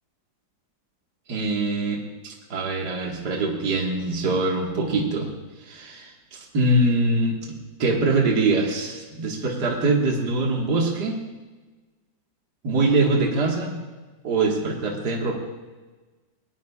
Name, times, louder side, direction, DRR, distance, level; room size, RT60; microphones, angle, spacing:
voice 1, 1.3-5.3 5.6-7.4 7.8-11.2 12.6-13.8 14.2-15.3, right 2 dB, 60° right, -1 dB, 2.4 m, -23 dB
23.0 x 19.5 x 2.4 m, 1.3 s
omnidirectional pair, 2.0 m